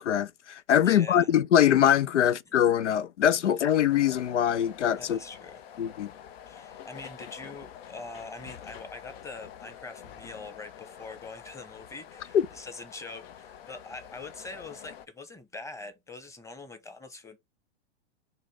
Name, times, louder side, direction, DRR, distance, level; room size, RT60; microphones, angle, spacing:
voice 1, 0.0-5.2 5.8-6.1 12.3-12.4, left 10 dB, 90° left, 0.5 m, -23 dB
voice 2, 0.8-1.3 2.5-2.6 5.0-5.6 6.5-17.4, left 3 dB, 10° left, 1.0 m, -44 dB
sound 1, 3.9-15.1, left 9 dB, 60° left, 0.8 m, -47 dB
6.5 x 2.8 x 5.4 m
hypercardioid pair, 115°, 34 cm